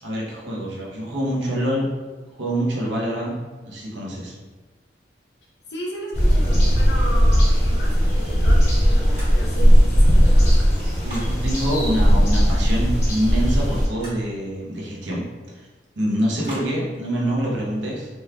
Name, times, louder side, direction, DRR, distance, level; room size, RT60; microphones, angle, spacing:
voice 1, 0.0-1.9 2.4-3.4 3.6-4.3 11.0-15.2 15.5-15.7 16.0-18.1, equal, 85° right, -4 dB, 0.9 m, -25 dB
voice 2, 5.7-10.7, equal, 65° left, -4 dB, 0.8 m, -35 dB
sound 1, 6.1-13.9, equal, 40° left, 1.2 m, -17 dB
sound 2, 9.1-9.7 10.0-11.4 13.9-14.2 16.4-16.7, equal, 40° right, 1.3 m, -37 dB
3.5 x 3.0 x 2.3 m, 1.3 s
head